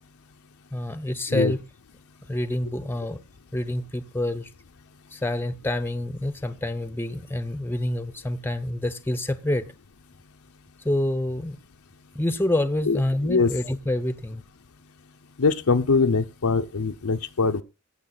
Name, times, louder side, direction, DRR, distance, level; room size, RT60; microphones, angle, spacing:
voice 1, 0.7-1.6 2.3-3.2 3.5-4.5 5.1-9.7 10.8-11.6 12.1-14.4, left 1 dB, 10° left, 0.7 m, -27 dB
voice 2, 12.9-13.5 15.4-17.6, left 4 dB, 75° left, 0.7 m, -22 dB
17.0 x 6.6 x 3.9 m
head